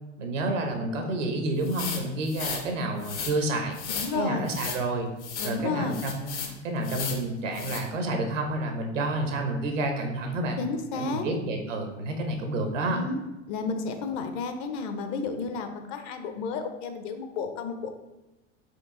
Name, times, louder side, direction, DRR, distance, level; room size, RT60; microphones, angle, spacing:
voice 1, 0.2-3.8 4.1-5.1 5.4-10.6 10.9-13.0, right 2 dB, 85° right, 4 dB, 0.9 m, -29 dB
sound 1, 1.6-2.6 3.0-3.3 3.7-4.1 4.5-4.8 5.2-5.5 5.9-6.5 6.8-7.2 7.5-7.8, left 6 dB, 65° left, 0.9 m, -34 dB
voice 2, 3.9-4.5 5.4-6.0 10.6-11.3 12.9-13.2 13.5-17.9, left 4 dB, 50° left, 7 dB, 0.6 m, -32 dB
4.5 x 2.5 x 3.7 m, 1.0 s
hypercardioid pair, 85°, 37 cm